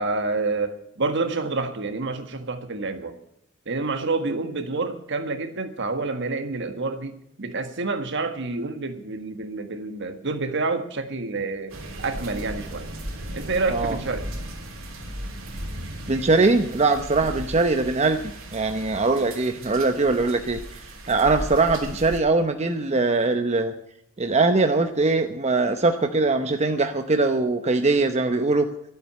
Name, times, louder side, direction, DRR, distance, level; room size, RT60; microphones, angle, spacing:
voice 1, 0.0-3.2 3.6-12.9 13.3-14.3 17.2-17.4, right 3 dB, 60° right, 8 dB, 1.6 m, -28 dB
sound 1, 11.7-22.2, right 1 dB, 80° right, 3.3 m, -36 dB
voice 2, 16.1-20.6 21.1-23.7 24.2-28.7, right 3 dB, 35° right, 6 dB, 0.8 m, -21 dB
12.5 x 8.1 x 9.8 m, 0.76 s
head